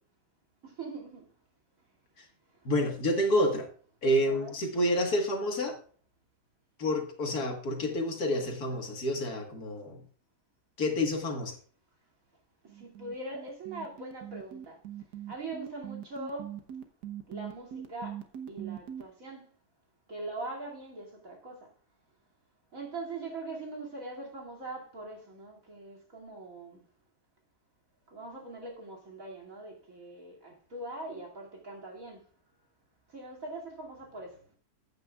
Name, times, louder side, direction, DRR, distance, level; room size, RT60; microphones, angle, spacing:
voice 1, 0.6-1.3 2.5-2.7 4.2-4.5 12.7-14.8 15.3-16.6 17.3-18.2 18.5-19.5 20.1-21.7 22.7-26.8 28.1-32.3 33.1-34.6, right 2 dB, 55° right, 3.0 m, -42 dB
voice 2, 2.7-3.7 4.0-5.8 6.8-10.0 10.8-11.5, left 1 dB, 65° left, 2.1 m, -28 dB
sound 1, 12.7-19.0, right 10 dB, 75° right, 1.6 m, -41 dB
14.5 x 8.9 x 2.4 m
omnidirectional pair, 1.8 m